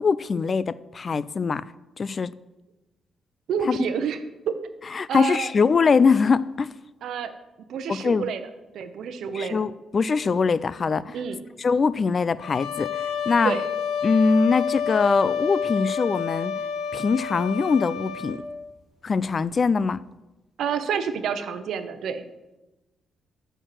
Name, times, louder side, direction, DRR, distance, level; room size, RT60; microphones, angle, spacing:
voice 1, 0.0-1.7 2.0-2.3 3.7-3.8 4.9-6.7 7.9-8.3 9.3-11.2 11.6-13.5 14.0-16.5 16.9-18.4 19.0-20.0, left 5 dB, 45° left, 0.3 m, -22 dB
voice 2, 3.5-4.2 4.5-4.6 5.1-5.5 7.0-7.3 7.7-8.4 8.7-9.6 11.1-11.4 13.4-13.6 20.6-22.2, right 7 dB, 80° right, 0.8 m, -28 dB
sound 1, 12.4-18.4, left 7 dB, 80° left, 1.3 m, -29 dB
9.0 x 4.5 x 7.6 m
cardioid pair, 80°, 0 cm